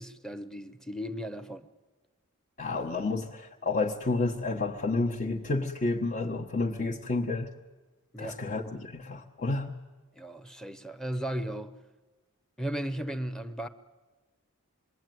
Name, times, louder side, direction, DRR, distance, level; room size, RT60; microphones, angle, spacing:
voice 1, 0.0-1.7 8.1-8.4 10.1-11.7 12.6-13.7, right 1 dB, 5° left, 0.9 m, -36 dB
voice 2, 2.6-7.5 8.2-9.7, left 3 dB, 40° left, 1.3 m, -30 dB
26.5 x 21.5 x 9.4 m
head